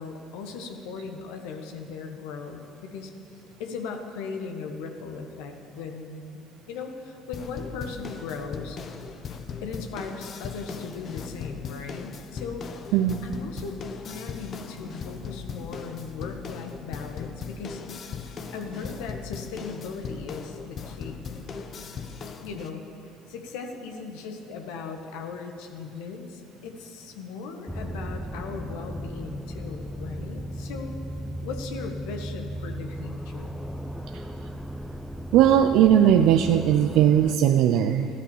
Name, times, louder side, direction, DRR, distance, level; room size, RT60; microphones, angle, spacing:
voice 1, 0.0-3.1 3.6-6.4 6.7-8.8 9.6-12.9 13.2-17.8 18.5-21.3 22.3-22.9 23.3-30.9 31.4-33.6, left 5 dB, 75° left, 4 dB, 1.5 m, -38 dB
sound 1, 7.3-22.7, left 5 dB, 50° left, 1.1 m, -38 dB
sound 2, 27.7-37.4, equal, 5° left, 0.8 m, -36 dB
voice 2, 35.3-38.1, right 10 dB, 70° right, 5 dB, 0.6 m, -19 dB
14.0 x 12.5 x 7.2 m, 2.6 s
hypercardioid pair, 70°, 0 cm